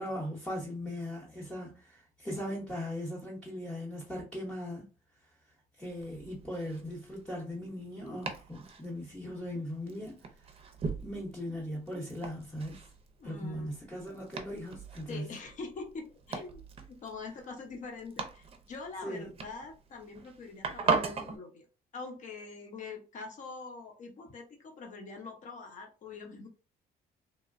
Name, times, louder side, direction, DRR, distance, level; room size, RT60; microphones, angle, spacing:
voice 1, 0.0-4.8 5.8-10.1 11.0-12.8 13.2-15.3 19.0-19.3, equal, 5° left, 0.8 m, -39 dB
Domestic sounds home sounds, 5.8-21.4, right 5 dB, 35° right, 0.6 m, -39 dB
voice 2, 13.2-13.7 15.1-21.6 21.9-26.5, left 4 dB, 50° left, 0.9 m, -44 dB
3.0 x 2.1 x 2.5 m
cardioid pair, 110°, 17 cm